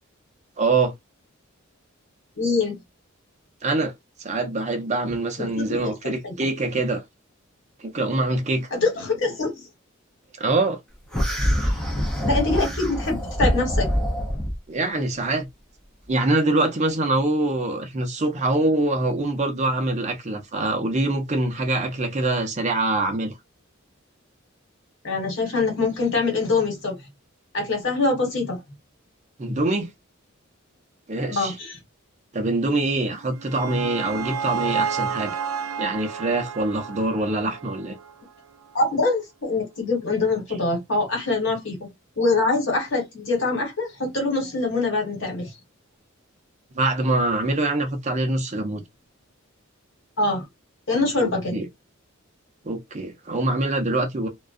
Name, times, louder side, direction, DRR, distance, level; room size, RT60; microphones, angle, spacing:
voice 1, 0.6-0.9 3.6-3.9 4.2-7.0 7.8-8.7 10.4-10.8 11.6-11.8 14.7-15.5 16.1-23.3 29.4-29.9 31.1-31.6 32.3-35.4 35.8-37.9 46.8-48.8 51.5-51.7 52.6-54.3, right 2 dB, 35° right, 0.6 m, -24 dB
voice 2, 2.3-2.7 5.4-5.9 6.2-6.3 8.7-9.6 12.2-13.9 25.0-27.0 27.5-28.6 31.3-31.8 38.7-41.9 42.2-45.5 50.2-50.4 50.9-51.6, left 3 dB, 65° left, 1.4 m, -24 dB
sound 1, 11.1-14.6, equal, 5° left, 0.7 m, -24 dB
sound 2, 33.1-38.3, right 6 dB, 90° right, 0.4 m, -31 dB
2.3 x 2.2 x 2.5 m
head